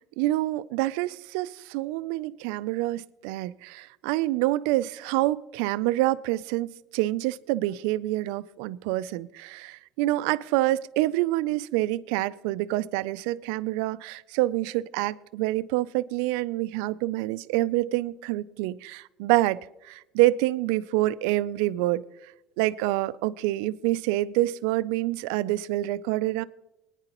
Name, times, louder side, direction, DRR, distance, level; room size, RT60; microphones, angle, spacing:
voice 1, 0.2-19.6 19.8-22.0 22.6-26.4, right 17 dB, 90° right, 17 dB, 0.3 m, -27 dB
22.0 x 9.8 x 3.0 m, 0.89 s
supercardioid pair, 100°, 0 cm